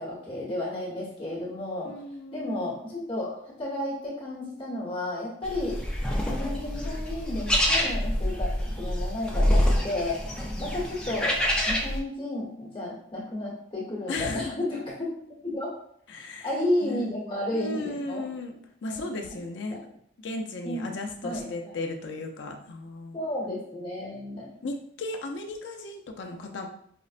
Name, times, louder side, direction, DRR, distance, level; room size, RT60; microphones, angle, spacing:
voice 1, 0.0-1.9 2.3-5.8 6.2-8.5 8.8-10.2 10.6-11.4 11.7-15.1 15.4-15.7 16.1-18.2 18.9-19.4 19.7-19.8 20.6-21.5 23.1-24.5, left 1 dB, 30° left, -7 dB, 1.1 m, -32 dB
voice 2, 1.8-2.7 14.1-14.7 16.1-16.5 16.8-17.0 17.5-18.5 18.8-19.8 20.2-23.2 24.6-26.7, left 2 dB, 75° left, 3 dB, 0.5 m, -35 dB
sound 1, 5.4-12.0, equal, 5° left, 0.4 m, -26 dB
5.1 x 2.1 x 2.4 m, 0.67 s
head